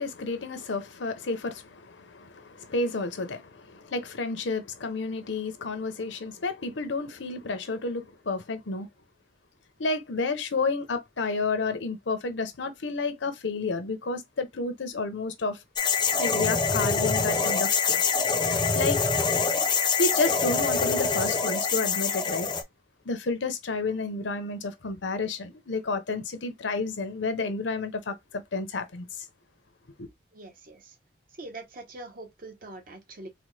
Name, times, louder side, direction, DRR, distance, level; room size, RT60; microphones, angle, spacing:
voice 1, 0.0-8.9 9.8-15.6 16.2-18.2 18.5-19.0 20.0-22.5 23.0-29.2 30.0-30.1, left 3 dB, 80° left, 0.7 m, -31 dB
sound 1, 15.8-22.6, left 5 dB, 25° left, 0.4 m, -25 dB
voice 2, 30.3-30.9 31.4-33.3, right 2 dB, 50° right, 0.8 m, -43 dB
4.1 x 2.1 x 3.2 m
head